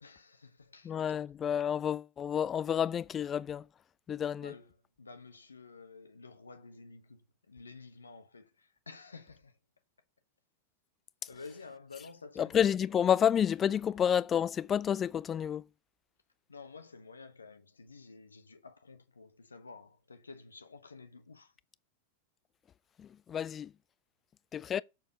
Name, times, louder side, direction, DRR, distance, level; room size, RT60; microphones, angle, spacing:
voice 1, 0.0-1.0 4.4-9.6 11.3-12.6 16.5-21.5, left 4 dB, 75° left, 1.0 m, -51 dB
voice 2, 0.8-3.6 4.1-4.5 12.4-15.6 23.0-23.7 24.5-24.8, left 9 dB, 25° left, 0.4 m, -30 dB
7.2 x 6.6 x 6.5 m
figure-of-eight pair, 90°, 0 cm